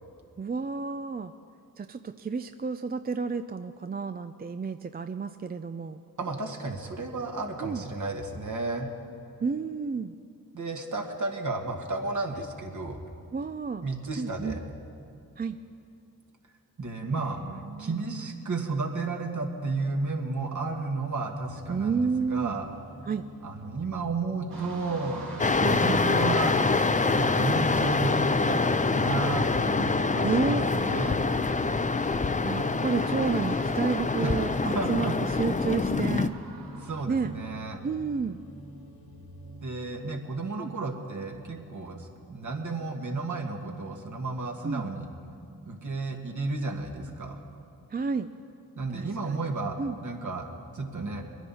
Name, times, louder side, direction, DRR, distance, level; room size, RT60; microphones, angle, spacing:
voice 1, 0.4-1.3 1.8-6.0 7.6-7.8 9.4-10.1 13.3-13.9 14.2-14.6 15.4-15.6 17.1-18.3 21.7-22.6 23.1-23.2 25.6-26.1 30.2-30.7 32.4-36.3 37.1-37.3 37.8-38.4 40.6-40.7 44.6-44.9 47.9-48.3 48.9-49.5 49.8-50.0, right 5 dB, 25° right, 9 dB, 0.5 m, -31 dB
voice 2, 6.2-8.9 10.5-13.0 13.8-14.6 16.8-17.4 17.8-22.7 23.4-25.3 25.6-26.6 27.1-31.2 34.2-35.1 36.5-37.8 39.6-45.1 45.7-47.4 48.8-50.5 50.7-51.2, right 3 dB, 55° right, 2 dB, 2.0 m, -33 dB
sound 1, 21.5-40.1, equal, 75° left, 1.9 m, -47 dB
sound 2, 24.5-37.0, right 3 dB, 85° right, 1.9 m, -44 dB
sound 3, 25.4-36.3, left 3 dB, 20° left, 0.6 m, -25 dB
22.0 x 10.0 x 4.3 m, 2.6 s
cardioid pair, 45°, 37 cm